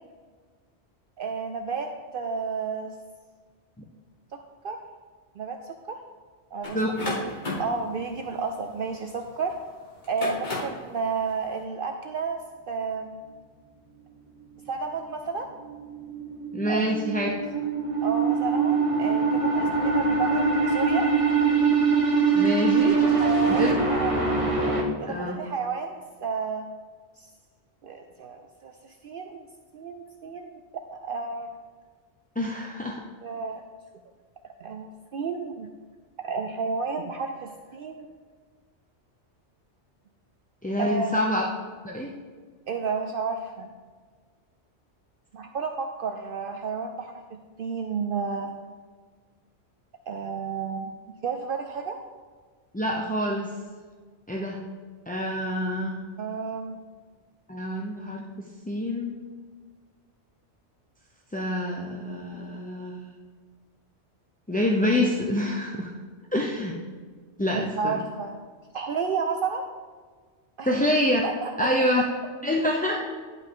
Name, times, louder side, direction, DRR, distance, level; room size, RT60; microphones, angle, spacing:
voice 1, 1.2-1.9 2.1-2.9 4.3-4.4 4.6-4.8 5.4-6.0 6.5-6.8 7.1-7.2 7.6-9.5 10.1-12.4 12.7-13.2 14.7-15.5 16.7-16.8 18.0-21.1 23.2-24.1 25.0-26.7 27.2-27.3 27.8-29.5 29.7-30.6 30.9-31.5 33.2-33.6 34.6-35.7 36.2-38.1 40.8-41.2 42.7-43.7 45.3-47.2 47.6-48.5 50.1-50.9 51.2-52.0 56.2-56.8 67.5-68.4 68.7-69.6 70.6-70.7 71.2-71.7, right 5 dB, 60° right, 4 dB, 0.7 m, -31 dB
sound 1, 6.6-9.4 10.0-10.9, left 2 dB, 45° left, 1.8 m, -33 dB
sound 2, 15.7-24.8, right 4 dB, 30° right, 1.1 m, -23 dB
voice 2, 16.5-17.3 22.3-23.0 23.5-23.8 25.1-25.4 32.4-33.0 40.6-41.4 41.8-42.1 52.7-53.5 54.3-54.6 55.1-56.0 57.5-59.2 61.3-63.0 64.5-65.9 66.3-66.8 67.4-68.0 70.7-71.2 71.6-72.1 72.4-73.0, left 1 dB, 10° left, -1 dB, 0.4 m, -26 dB
11.0 x 5.4 x 3.7 m, 1.5 s
omnidirectional pair, 1.2 m